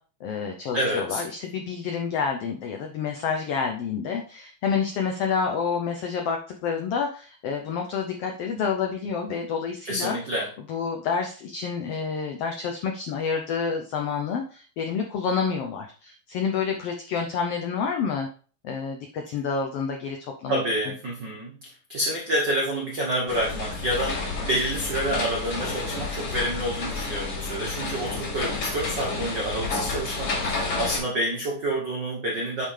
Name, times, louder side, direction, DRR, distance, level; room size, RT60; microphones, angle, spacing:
voice 1, 0.2-10.2 10.7-18.3 18.6-20.6, left 6 dB, 90° left, 3 dB, 1.3 m, -28 dB
voice 2, 0.7-1.2 9.8-10.5 20.5-32.7, right 1 dB, 75° right, -1 dB, 1.0 m, -28 dB
sound 1, 23.3-31.0, left 3 dB, 70° left, 4.5 m, -30 dB
8.8 x 5.6 x 3.3 m, 0.41 s
omnidirectional pair, 3.7 m